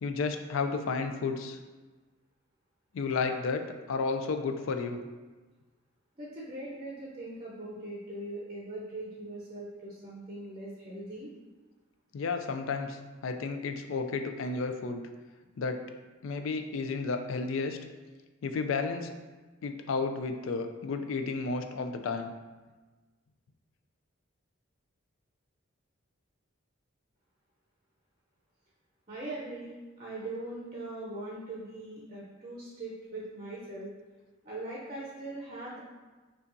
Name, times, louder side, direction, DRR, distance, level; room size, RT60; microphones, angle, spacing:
voice 1, 0.0-1.6 2.9-3.6 3.9-5.0 12.1-15.0 15.6-15.8 16.2-17.8 18.4-19.1 19.6-22.3, left 4 dB, 70° left, 7 dB, 0.3 m, -32 dB
voice 2, 6.2-11.3 29.1-33.9 34.4-35.8, right 2 dB, 30° right, -5 dB, 0.6 m, -41 dB
5.3 x 2.3 x 2.6 m, 1.3 s
head